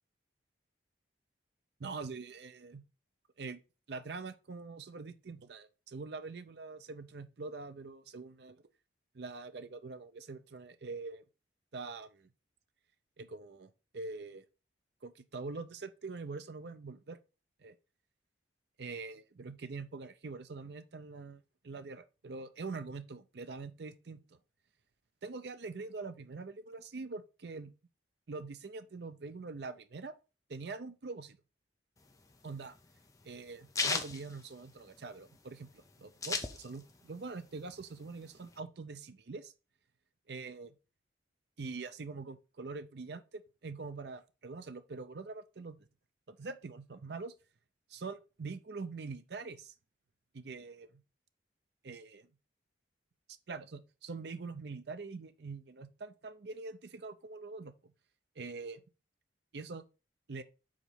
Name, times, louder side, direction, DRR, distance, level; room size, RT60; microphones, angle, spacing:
voice 1, 1.8-2.8 3.4-3.6 3.9-8.6 9.1-11.2 11.7-12.3 13.2-14.4 15.0-17.2 17.6-17.7 18.8-24.2 25.2-27.7 28.3-30.1 30.5-31.4 32.4-32.8 33.2-39.5 40.3-40.7 41.6-45.8 46.3-47.3 47.9-49.7 50.3-51.0 51.8-52.3 53.5-57.7 58.4-58.8 59.5-59.8 60.3-60.4, right 4 dB, 60° right, 0.5 m, -44 dB
sound 1, 32.0-35.2 35.5-35.6 35.8-37.1 37.4-38.6, left 4 dB, 20° left, 0.6 m, -36 dB
5.0 x 4.0 x 5.6 m
head